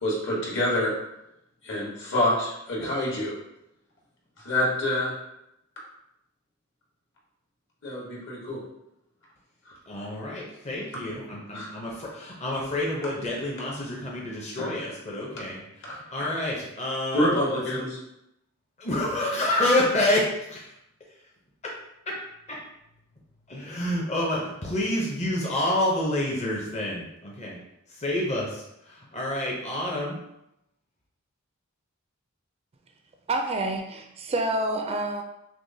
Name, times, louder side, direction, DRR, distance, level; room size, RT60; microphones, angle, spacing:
voice 1, 0.0-0.9 1.6-3.3 4.4-5.1 7.8-8.6 9.6-9.8 11.5-11.7 14.5-14.7 15.8-15.9 17.1-18.0, left 1 dB, 60° left, -4 dB, 1.3 m, -26 dB
voice 2, 9.9-17.4 18.8-20.7 21.6-21.7 22.1-22.2 22.5-22.6 23.5-27.6 28.0-30.2, left 1 dB, 30° left, -3 dB, 0.6 m, -28 dB
voice 3, 33.3-35.2, right 2 dB, 30° right, 3 dB, 0.3 m, -28 dB
6.0 x 2.1 x 2.7 m, 0.84 s
head